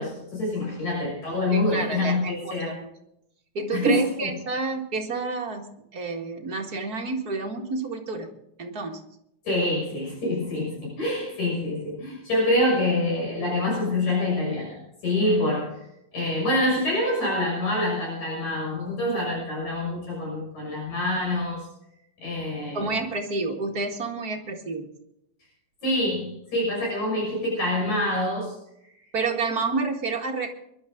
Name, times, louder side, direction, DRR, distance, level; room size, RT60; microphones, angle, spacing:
voice 1, 0.0-2.8 3.7-4.3 9.4-15.9 16.1-21.7 22.2-23.0 25.8-28.6 28.8-28.9, left 1 dB, 60° left, -3 dB, 7.7 m, -26 dB
voice 2, 1.5-2.9 3.5-5.7 5.9-8.3 8.6-9.0 22.7-24.9 29.1-30.5, right 4 dB, 35° right, 2 dB, 1.8 m, -29 dB
23.0 x 12.0 x 3.7 m, 0.79 s
omnidirectional pair, 3.7 m